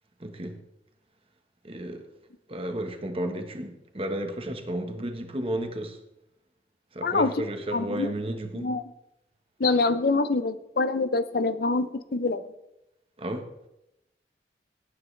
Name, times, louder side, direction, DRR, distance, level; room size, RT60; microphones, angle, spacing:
voice 1, 0.2-0.6 1.6-2.1 2.5-6.0 6.9-8.7 13.2-13.5, right 1 dB, 30° right, 1.2 m, -33 dB
voice 2, 7.0-7.3 7.7-8.1 8.5-8.8 9.6-12.4, left 3 dB, 55° left, 0.6 m, -25 dB
18.0 x 9.4 x 3.3 m
head